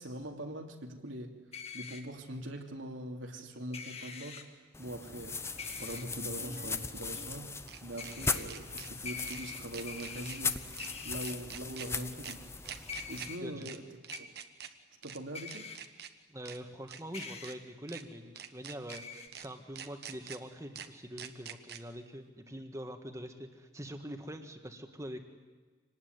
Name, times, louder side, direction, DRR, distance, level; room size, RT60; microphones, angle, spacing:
voice 1, 0.0-1.4 1.7-4.4 4.8-7.5 7.8-10.6 11.0-13.8 14.2-14.3 15.0-15.7, right 1 dB, 85° right, 2 dB, 3.0 m, -42 dB
sound 1, 1.5-2.0 3.7-4.4 5.6-6.0 8.0-8.4 9.0-10.4 10.8-11.4 12.9-13.4 14.1-14.2 15.3-15.8 17.1-17.5 18.9-19.3, left 5 dB, 30° left, 1.9 m, -44 dB
sound 2, 3.8-3.9 6.3-8.1 8.5-8.9 9.3-9.4 9.7-10.4 10.7-10.9 11.2-11.9 12.2-12.3 12.6-13.3 13.6-13.8 14.0-14.7 15.0-15.2 15.5-16.1 16.4-16.6 16.9-17.5 17.9-18.0 18.4-19.0 19.3-19.5 19.8-20.4 20.7-20.9 21.2-21.8, right 8 dB, 55° right, 1.3 m, -46 dB
sound 3, 4.7-13.4, left 4 dB, 15° left, 0.8 m, -39 dB
voice 2, 16.3-25.2, equal, 15° right, 6 dB, 1.8 m, -44 dB
26.0 x 19.0 x 9.6 m, 1.4 s
head